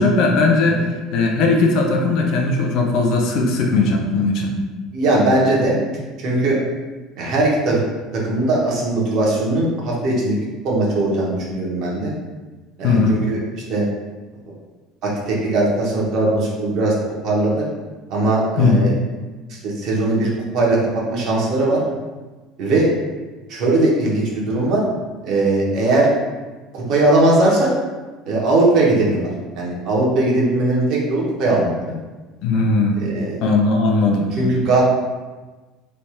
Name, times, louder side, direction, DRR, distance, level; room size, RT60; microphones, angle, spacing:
voice 1, 0.0-4.5 12.8-13.2 18.6-18.9 32.4-33.0 33.4-34.3, left 3 dB, 45° left, 1 dB, 0.4 m, -18 dB
voice 2, 4.9-5.8 6.2-6.6 7.2-7.8 8.1-10.3 10.6-12.1 12.8-13.4 13.7-13.8 15.0-16.9 17.2-17.6 18.1-18.9 19.6-21.8 22.6-22.9 23.5-24.8 25.2-26.1 26.7-27.7 28.3-29.3 29.5-31.7 33.0-33.4 34.4-34.8, right 2 dB, 40° right, -4 dB, 0.8 m, -19 dB
3.2 x 2.3 x 4.2 m, 1.3 s
cardioid pair, 180°, 0 cm